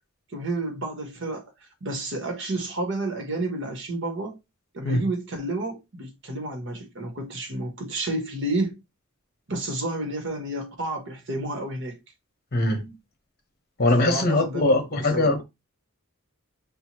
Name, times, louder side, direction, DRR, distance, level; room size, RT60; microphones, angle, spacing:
voice 1, 0.3-4.4 4.7-8.8 9.5-12.0 14.0-15.3, right 2 dB, 55° right, 1.2 m, -30 dB
voice 2, 12.5-12.9 13.8-15.4, left 2 dB, 45° left, 1.1 m, -21 dB
5.4 x 2.9 x 2.9 m
head